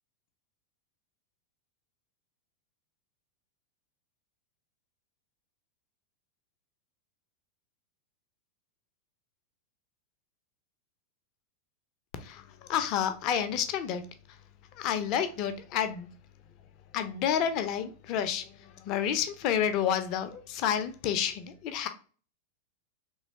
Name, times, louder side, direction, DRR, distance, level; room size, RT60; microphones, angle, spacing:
voice 1, 12.2-14.1 14.7-16.1 16.9-21.9, left 9 dB, 40° left, 0.5 m, -30 dB
3.1 x 3.0 x 2.7 m
figure-of-eight pair, 90°, 0 cm